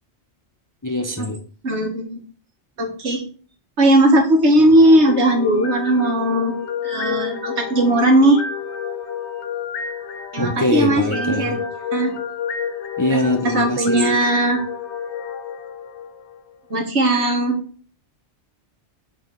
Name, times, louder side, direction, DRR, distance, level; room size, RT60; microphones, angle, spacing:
voice 1, 0.8-1.4 10.4-11.6 13.0-14.3, left 1 dB, 25° left, 0.5 m, -22 dB
voice 2, 1.6-2.2 2.8-3.3 3.8-6.5 6.8-8.4 10.3-11.6 11.9-12.1 13.5-14.6 16.7-17.6, right 1 dB, 70° right, 1.6 m, -17 dB
sound 1, 4.4-16.5, left 6 dB, 75° left, 1.0 m, -30 dB
6.4 x 3.7 x 4.6 m
omnidirectional pair, 1.2 m